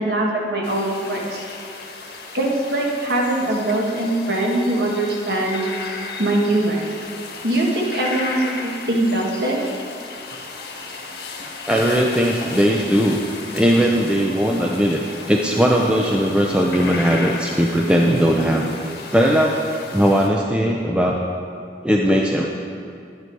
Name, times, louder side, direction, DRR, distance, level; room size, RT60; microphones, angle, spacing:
voice 1, 0.0-1.4 2.3-5.7 6.2-6.9 7.4-9.6, right 1 dB, 60° right, -1 dB, 1.6 m, -22 dB
sound 1, 0.6-20.3, left 3 dB, 60° left, 1.5 m, -35 dB
voice 2, 11.7-13.2 13.5-15.0 15.3-18.6 19.1-19.6 19.9-21.2 21.8-22.5, equal, 5° right, -1 dB, 0.5 m, -18 dB
11.5 x 9.5 x 4.6 m, 2.4 s
head